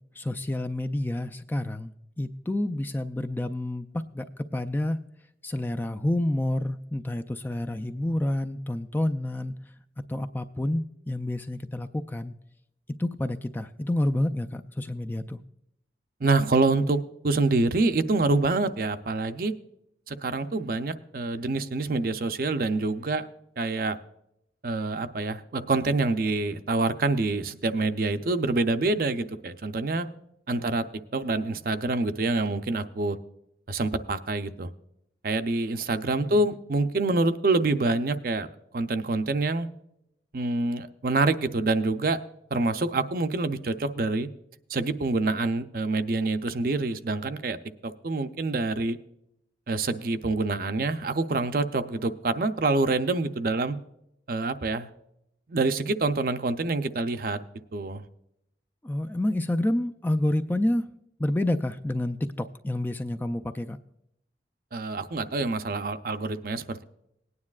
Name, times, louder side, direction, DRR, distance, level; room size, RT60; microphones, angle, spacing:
voice 1, 0.2-3.9 4.1-4.3 4.5-5.0 5.4-9.5 10.1-12.3 13.0-15.4 30.6-30.8 36.2-36.3 58.8-60.9 61.2-63.8, left 1 dB, 10° left, 7 dB, 0.3 m, -29 dB
voice 2, 16.2-17.0 17.2-19.5 20.1-23.3 23.6-24.0 24.6-30.1 30.5-30.8 31.1-33.2 33.7-34.7 35.2-38.5 38.7-39.7 40.3-42.2 42.5-44.3 44.7-47.6 47.8-49.0 49.7-53.8 54.3-54.9 55.5-57.4 57.7-58.0 64.7-66.8, right 3 dB, 50° right, 10 dB, 0.5 m, -26 dB
19.0 x 9.6 x 2.4 m, 0.79 s
head